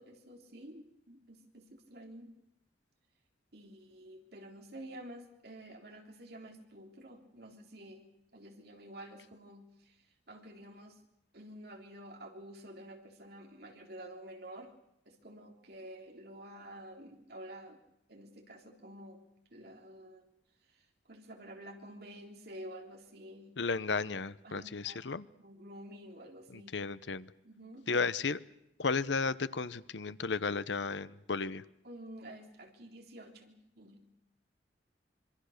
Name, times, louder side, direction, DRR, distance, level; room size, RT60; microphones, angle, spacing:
voice 1, 0.0-2.3 3.5-11.0 11.3-14.7 15.1-17.8 18.1-19.2 19.5-20.3 20.7-23.5 24.4-25.1 25.4-26.7 27.4-27.9 31.8-34.1, right 1 dB, 55° right, 2 dB, 3.6 m, -50 dB
voice 2, 23.6-25.2 26.5-27.3 27.9-28.4 28.8-31.6, left 4 dB, 75° left, 16 dB, 0.8 m, -34 dB
26.0 x 24.0 x 6.6 m, 0.82 s
head